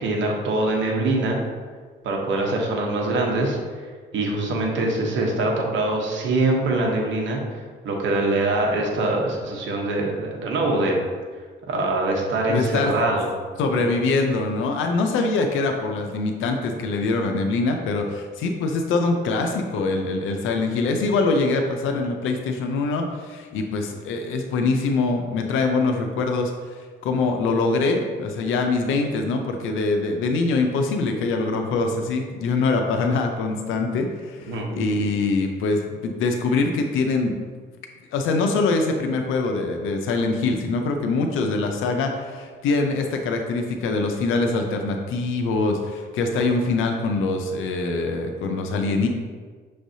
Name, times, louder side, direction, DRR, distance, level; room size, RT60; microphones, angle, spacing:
voice 1, 0.0-1.4 2.0-3.6 4.1-7.4 7.8-11.0 11.7-13.3 13.7-13.8 34.5-34.7, right 2 dB, 70° right, 0 dB, 0.9 m, -23 dB
voice 2, 12.5-12.9 13.6-37.3 38.1-49.1, left 3 dB, 85° left, 4 dB, 0.5 m, -24 dB
6.1 x 3.2 x 2.7 m, 1.5 s
cardioid pair, 90°, 20 cm